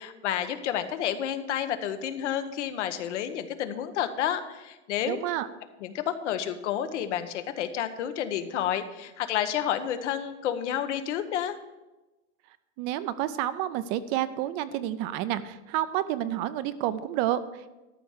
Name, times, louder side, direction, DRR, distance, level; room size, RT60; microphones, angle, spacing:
voice 1, 0.0-5.2 5.8-11.6, left 10 dB, 85° left, 9 dB, 1.2 m, -30 dB
voice 2, 5.1-5.5 12.8-17.7, right 12 dB, 35° right, 14 dB, 0.4 m, -29 dB
13.0 x 5.7 x 6.4 m, 1.1 s
supercardioid pair, 155°, 34 cm